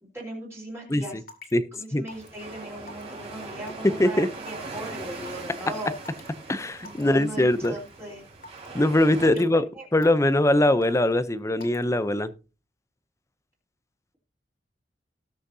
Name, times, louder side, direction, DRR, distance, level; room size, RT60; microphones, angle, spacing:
voice 1, 0.1-1.2 1.7-5.9 6.8-8.2 9.3-9.4 9.7-9.9, right 1 dB, 15° right, 3.3 m, -38 dB
Raindrop / Water tap faucet / Drip, 1.3-1.5 2.1-2.4 2.9-3.1 3.7-4.0 4.5-4.7 5.3-5.4 6.1-6.3 6.8-7.0 7.6-7.9 8.4-8.7 9.2-9.5 10.0-10.3 10.8-11.1 11.6-11.8, left 2 dB, 60° left, 2.6 m, -44 dB
sound 1, 2.1-9.3, right 3 dB, 35° right, 4.3 m, -41 dB
voice 2, 6.5-7.7 8.7-9.6 9.9-12.3, left 1 dB, 15° left, 0.6 m, -21 dB
19.0 x 6.4 x 2.7 m
head